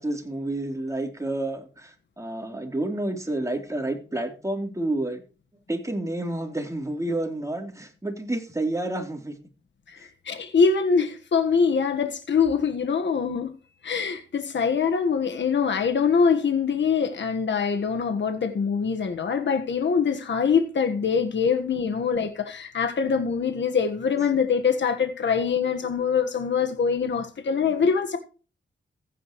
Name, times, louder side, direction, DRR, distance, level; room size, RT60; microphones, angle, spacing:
voice 1, 0.0-5.2 5.7-9.3 10.0-10.1, right 1 dB, 15° right, 3.4 m, -29 dB
voice 2, 10.2-13.6 13.8-28.2, left 6 dB, 70° left, 1.5 m, -24 dB
15.0 x 9.2 x 3.2 m
cardioid pair, 60°, 20 cm